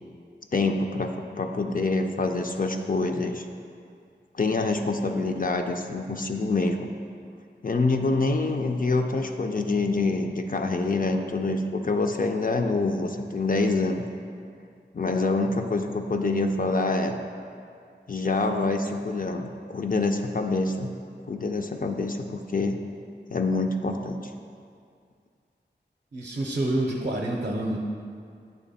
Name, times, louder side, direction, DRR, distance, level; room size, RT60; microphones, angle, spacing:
voice 1, 0.5-3.5 4.3-6.9 7.6-14.0 14.9-17.2 18.1-20.9 21.3-22.8 23.3-24.3, left 3 dB, 50° left, 4 dB, 0.4 m, -26 dB
voice 2, 26.1-27.8, right 1 dB, 50° right, -1 dB, 0.6 m, -27 dB
8.3 x 3.3 x 4.1 m, 2.3 s
wide cardioid pair, 60°, 19 cm